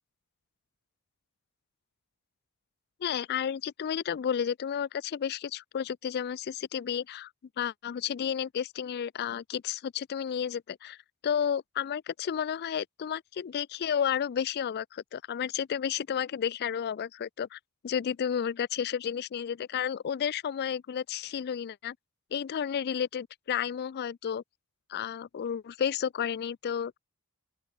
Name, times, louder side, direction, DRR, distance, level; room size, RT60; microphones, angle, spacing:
voice 1, 3.0-7.3 7.6-11.0 11.2-22.0 22.3-24.4 24.9-27.0, left 8 dB, 45° left, 0.3 m, -32 dB
open air
head